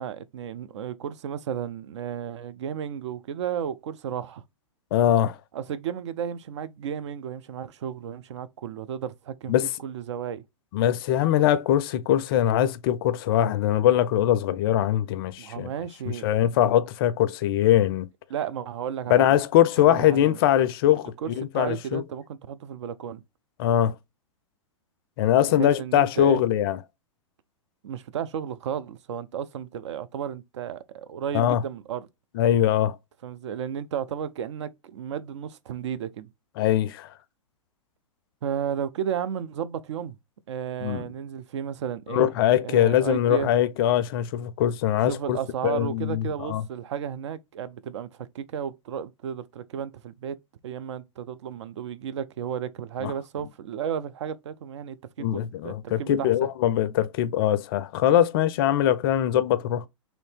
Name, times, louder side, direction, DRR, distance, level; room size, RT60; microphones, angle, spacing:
voice 1, 0.0-4.4 5.5-9.5 9.8-10.4 15.4-16.3 18.3-19.4 19.8-20.4 21.2-23.2 25.5-26.4 27.8-32.1 33.2-36.3 38.4-40.2 40.5-42.3 42.6-43.5 45.1-50.4 50.6-56.5, right 8 dB, 60° right, 0.4 m, -33 dB
voice 2, 4.9-5.4 9.5-9.7 10.7-15.7 16.2-18.1 19.1-22.0 23.6-23.9 25.2-26.8 31.3-31.6 32.3-33.0 36.6-37.1 40.8-41.0 42.1-45.4 45.6-46.6 53.0-53.1 55.2-59.9, left 11 dB, 45° left, 0.4 m, -22 dB
3.0 x 2.6 x 3.3 m
figure-of-eight pair, 110°, 17 cm